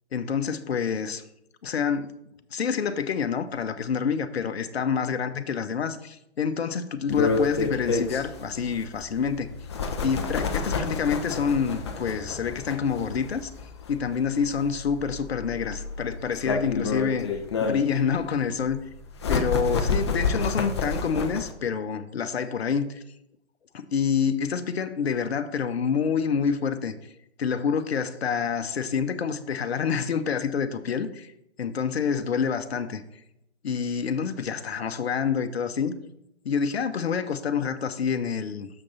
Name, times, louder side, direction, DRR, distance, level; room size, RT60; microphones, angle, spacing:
voice 1, 0.1-1.2 1.6-2.1 2.5-9.5 10.0-13.5 13.9-17.3 17.6-18.8 19.3-23.0 23.7-26.9 27.4-31.3 31.6-33.0 33.6-36.0 36.4-38.7, left 6 dB, 60° left, 0.7 m, -27 dB
sound 1, 7.1-21.5, left 4 dB, 25° left, 0.4 m, -30 dB
6.7 x 6.0 x 4.2 m
figure-of-eight pair, 130°, 36 cm